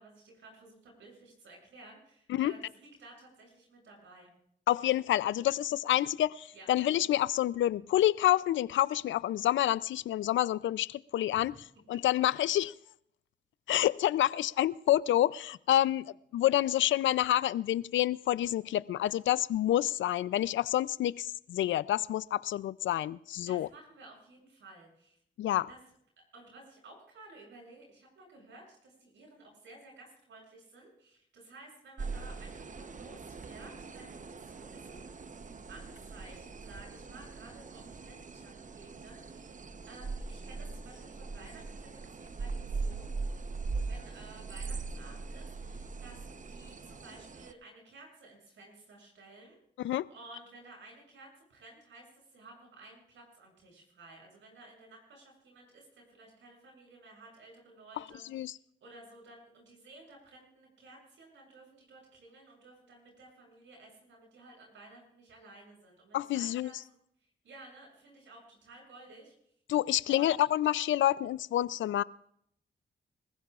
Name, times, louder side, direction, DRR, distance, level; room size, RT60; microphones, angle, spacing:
voice 1, 0.0-4.3 6.5-6.7 11.3-11.4 23.5-25.2 25.7-25.8 26.3-35.0 35.7-39.6 39.9-43.1 43.8-49.6 50.1-58.4 58.8-66.7 67.4-69.3 70.1-70.3, right 2 dB, 85° right, 7.7 m, -54 dB
voice 2, 4.7-11.6 11.9-12.7 13.7-23.7 25.4-25.7 49.8-50.1 58.0-58.6 66.1-66.7 69.7-72.0, left 13 dB, 85° left, 0.5 m, -28 dB
sound 1, 32.0-47.5, right 4 dB, 40° right, 0.9 m, -41 dB
26.5 x 15.0 x 2.5 m
supercardioid pair, 50°, 19 cm